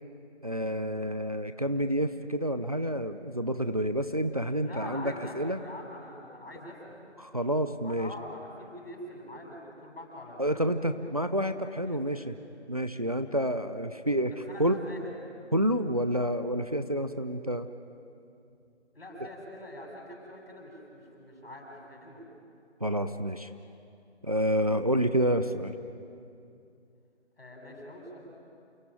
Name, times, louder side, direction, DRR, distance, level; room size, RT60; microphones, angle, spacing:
voice 1, 0.4-5.6 7.2-8.1 10.4-12.3 12.7-14.3 14.6-14.7 15.5-17.7 22.8-23.5 24.2-25.7, equal, 35° right, 9 dB, 0.7 m, -29 dB
voice 2, 4.6-7.0 7.8-11.0 11.8-12.3 14.5-15.2 18.9-22.3 27.4-28.2, left 1 dB, 55° left, 0 dB, 8.0 m, -44 dB
28.5 x 18.0 x 9.1 m, 2.6 s
figure-of-eight pair, 170°, 34 cm